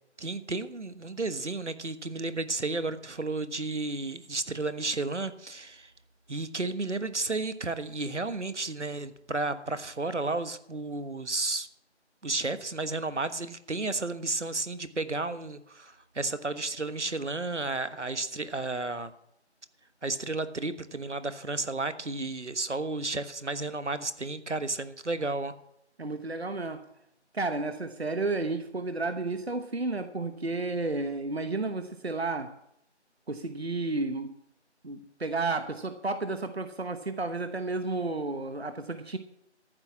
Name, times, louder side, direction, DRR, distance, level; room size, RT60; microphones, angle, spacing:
voice 1, 0.2-5.9 6.3-11.7 12.2-19.1 20.0-25.5, right 3 dB, 80° right, 12 dB, 1.4 m, -32 dB
voice 2, 26.0-26.8 27.3-32.5 33.3-34.3 34.8-39.2, right 3 dB, 60° right, 10 dB, 1.1 m, -32 dB
14.0 x 6.2 x 8.6 m, 0.77 s
figure-of-eight pair, 175°, 35 cm